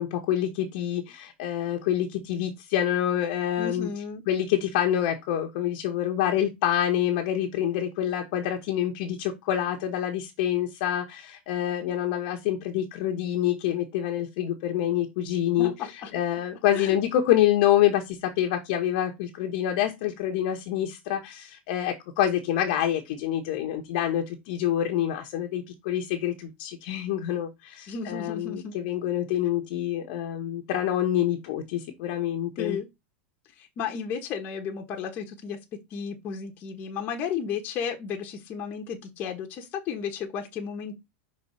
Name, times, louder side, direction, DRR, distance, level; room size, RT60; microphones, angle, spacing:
voice 1, 0.0-3.9 4.3-32.8, left 11 dB, 55° left, 1.2 m, -27 dB
voice 2, 3.6-4.2 15.6-16.1 16.7-16.9 27.9-28.7 32.6-32.9 33.6-35.6 35.9-40.9, left 7 dB, 30° left, 1.3 m, -33 dB
5.5 x 3.9 x 5.5 m
supercardioid pair, 160°, 6 cm